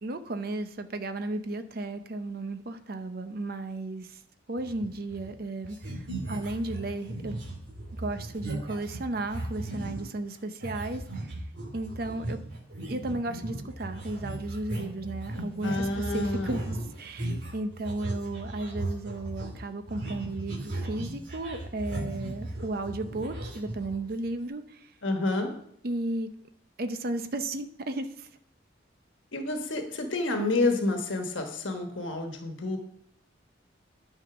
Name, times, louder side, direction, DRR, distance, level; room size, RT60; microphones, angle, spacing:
voice 1, 0.0-4.2 4.5-7.3 7.9-11.4 11.7-12.4 12.9-24.9 25.8-26.3 26.8-28.3, right 2 dB, 50° right, 9 dB, 0.7 m, -34 dB
sound 1, 4.6-5.4 5.6-10.1 10.6-24.3, right 1 dB, 70° right, 2.3 m, -37 dB
voice 2, 15.6-16.6 25.0-25.5 29.3-32.8, left 2 dB, 85° left, 4 dB, 1.3 m, -29 dB
10.0 x 5.7 x 5.9 m, 0.70 s
head